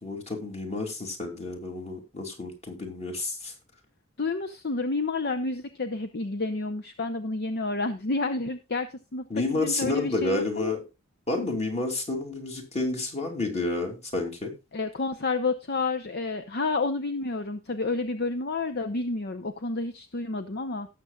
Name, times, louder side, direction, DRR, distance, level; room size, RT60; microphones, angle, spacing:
voice 1, 0.0-3.5 9.3-10.8 11.3-14.5, left 2 dB, 30° left, 3 dB, 2.8 m, -30 dB
voice 2, 4.2-10.7 14.7-20.9, left 3 dB, 50° left, 9 dB, 0.8 m, -30 dB
18.0 x 7.0 x 2.4 m, 0.27 s
head